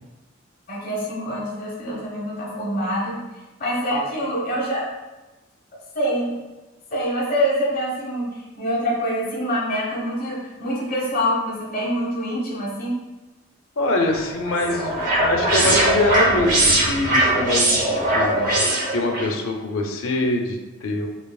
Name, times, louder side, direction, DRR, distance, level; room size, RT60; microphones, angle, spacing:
voice 1, 0.7-3.2 3.6-4.9 5.9-6.3 6.9-13.0, equal, 45° left, -5 dB, 1.3 m, -25 dB
voice 2, 13.8-18.5 18.9-21.1, left 2 dB, 85° left, 2 dB, 0.6 m, -24 dB
sound 1, 14.1-19.3, right 1 dB, 40° right, 0.8 m, -20 dB
4.7 x 2.7 x 2.3 m, 1.1 s
head